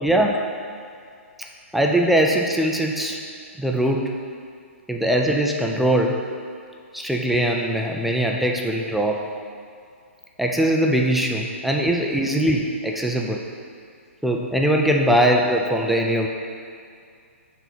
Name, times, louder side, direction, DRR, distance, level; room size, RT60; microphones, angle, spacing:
voice 1, 0.0-0.4 1.7-3.2 3.6-4.1 4.9-6.2 6.9-9.2 10.4-13.4 14.2-16.3, right 1 dB, ahead, 0 dB, 0.3 m, -21 dB
5.9 x 4.0 x 6.1 m, 2.3 s
hypercardioid pair, 145°, 7 cm